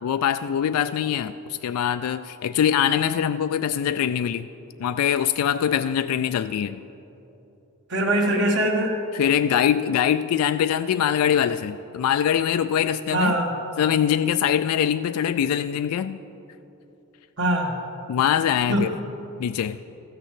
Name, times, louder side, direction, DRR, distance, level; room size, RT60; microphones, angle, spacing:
voice 1, 0.0-4.5 4.8-6.8 9.1-13.3 13.8-16.2 18.1-19.0 19.4-19.8, left 9 dB, 80° left, 13 dB, 0.3 m, -23 dB
voice 2, 7.9-8.9 13.1-13.5 17.4-17.8 18.7-18.8, right 1 dB, 55° right, 1 dB, 1.6 m, -22 dB
14.0 x 6.7 x 7.5 m, 2.9 s
head